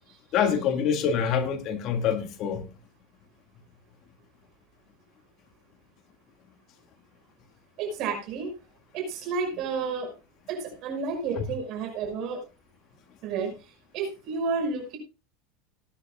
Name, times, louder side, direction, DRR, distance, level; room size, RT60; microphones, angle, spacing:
voice 1, 0.3-2.7, left 7 dB, 45° left, 1.8 m, -25 dB
voice 2, 7.8-8.5 8.9-10.1 10.5-12.4 13.2-13.5 13.9-15.0, right 4 dB, 50° right, 5.5 m, -31 dB
19.5 x 10.0 x 2.3 m
supercardioid pair, 135°, 0 cm